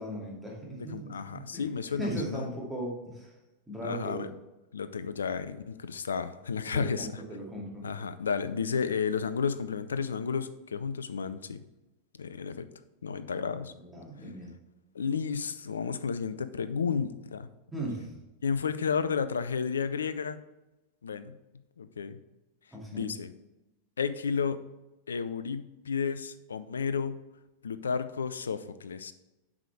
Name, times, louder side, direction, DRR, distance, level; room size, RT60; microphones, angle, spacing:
voice 1, 0.0-1.7 2.0-3.3 3.7-4.3 6.7-7.8 13.3-14.5 17.7-18.2 22.7-23.1, equal, 5° right, -3 dB, 2.4 m, -38 dB
voice 2, 0.9-2.5 3.8-4.3 4.7-7.2 7.8-11.6 12.2-12.7 13.0-13.7 14.9-17.5 18.4-20.4 21.0-21.3 21.8-22.2 22.9-23.3 24.0-24.6 25.1-27.2 27.6-29.1, left 6 dB, 70° left, 13 dB, 0.5 m, -32 dB
7.4 x 5.1 x 4.7 m, 1.0 s
figure-of-eight pair, 90°, 0 cm